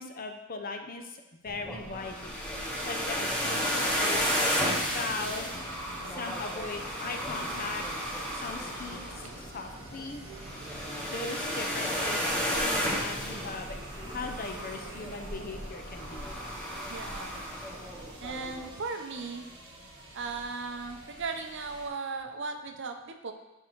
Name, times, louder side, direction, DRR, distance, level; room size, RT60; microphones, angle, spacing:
voice 1, 0.0-2.4 2.8-4.5 4.9-5.5 6.0-7.9 8.3-10.2 11.0-13.8 14.1-16.3, left 3 dB, 45° left, 5 dB, 0.7 m, -39 dB
sound 1, 1.5-18.7, equal, 5° left, 1.2 m, -33 dB
sound 2, 4.7-15.6, right 3 dB, 90° right, 1.3 m, -49 dB
sound 3, 5.1-21.9, right 1 dB, 20° right, 1.6 m, -50 dB
voice 2, 16.9-17.4 18.2-19.4 20.1-23.3, right 4 dB, 60° right, 5 dB, 0.7 m, -37 dB
10.0 x 3.7 x 4.6 m, 0.98 s
head